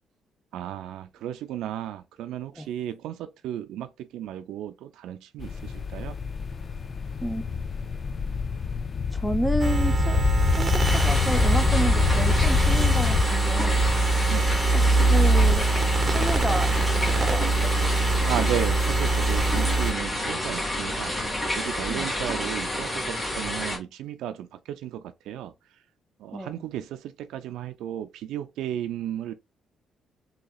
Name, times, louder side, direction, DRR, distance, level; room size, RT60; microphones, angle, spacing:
voice 1, 0.5-6.2 14.3-14.6 18.3-25.5 26.2-29.3, right 11 dB, 85° right, 0.4 m, -34 dB
sound 1, 5.4-13.2, left 7 dB, 45° left, 0.4 m, -26 dB
voice 2, 9.1-13.8 14.8-15.7 16.1-17.5 21.9-22.1 26.3-26.6, right 1 dB, 5° left, 0.7 m, -30 dB
sound 2, 9.6-19.9, right 2 dB, 30° right, 0.9 m, -23 dB
sound 3, 10.8-23.8, left 1 dB, 20° left, 1.7 m, -30 dB
4.0 x 2.8 x 2.3 m
cardioid pair, 90°, 0 cm